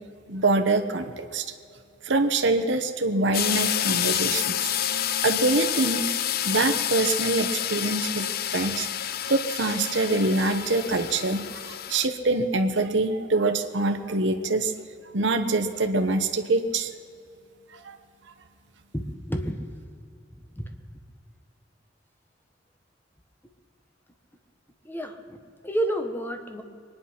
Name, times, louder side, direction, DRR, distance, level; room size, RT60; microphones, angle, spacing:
voice 1, 0.3-1.4 2.0-4.7 5.2-6.0 6.4-8.9 9.3-14.7 15.1-16.9 17.7-17.9, right 2 dB, 70° right, 6 dB, 1.1 m, -25 dB
sound 1, 3.3-12.1, left 10 dB, 55° left, 0.6 m, -28 dB
voice 2, 18.9-19.6 20.3-20.7 24.8-26.6, right 1 dB, 10° left, 5 dB, 1.3 m, -30 dB
23.5 x 10.5 x 5.9 m, 2.4 s
head